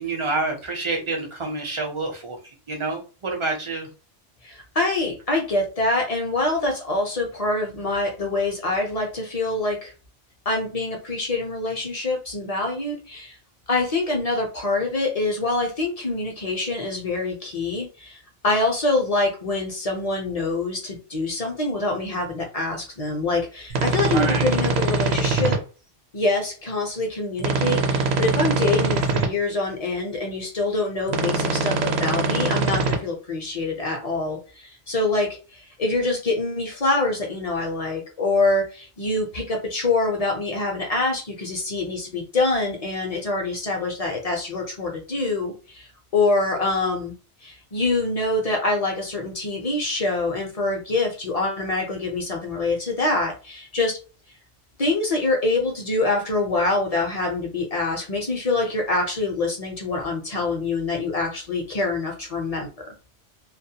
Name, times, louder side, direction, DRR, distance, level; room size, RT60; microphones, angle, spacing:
voice 1, 0.0-2.4 2.7-3.9 24.0-24.5, right 3 dB, 40° right, 1 dB, 0.4 m, -28 dB
voice 2, 4.4-9.9 10.5-13.3 13.7-18.2 18.4-25.6 26.1-45.9 46.1-47.1 47.4-54.0 54.8-62.7, left 2 dB, 45° left, 1 dB, 0.5 m, -25 dB
sound 1, 23.7-25.6 27.4-29.3 31.1-32.9, right 3 dB, 70° right, 0.8 m, -23 dB
2.3 x 2.1 x 2.7 m, 0.35 s
omnidirectional pair, 1.2 m